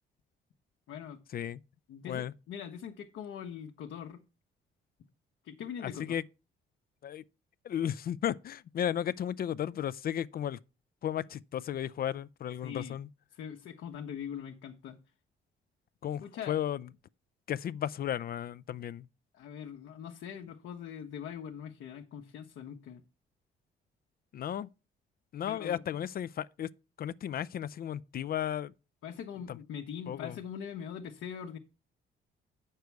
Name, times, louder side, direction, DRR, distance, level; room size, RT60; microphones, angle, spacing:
voice 1, 0.9-1.2 1.9-4.2 5.4-6.2 12.6-13.0 13.3-15.0 16.2-16.6 19.3-23.0 25.5-25.8 29.0-31.6, left 8 dB, 80° left, 1.0 m, -42 dB
voice 2, 5.8-6.2 7.0-7.2 7.6-10.6 11.0-13.1 16.0-16.9 17.5-19.1 24.3-24.7 25.3-26.7 27.0-28.7 29.5-29.6 30.1-30.4, left 10 dB, 50° left, 0.4 m, -34 dB
8.2 x 6.6 x 4.6 m
cardioid pair, 90°, 20 cm